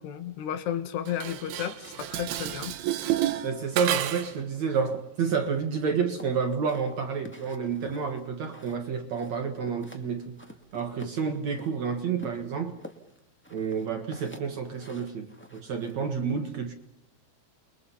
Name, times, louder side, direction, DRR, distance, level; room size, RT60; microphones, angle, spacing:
voice 1, 0.0-2.7, left 10 dB, 75° left, 9 dB, 3.7 m, -33 dB
Dishes pots and pans, 1.1-4.4, right 12 dB, 70° right, 2.9 m, -30 dB
voice 2, 3.4-10.4 10.7-12.7 13.5-16.7, right 6 dB, 55° right, 6 dB, 2.2 m, -29 dB
sound 1, 6.2-8.9 9.1-10.1 10.4-11.7 12.2-16.0, left 1 dB, 5° left, 0.9 m, -48 dB
29.0 x 22.0 x 5.7 m, 0.73 s
omnidirectional pair, 4.8 m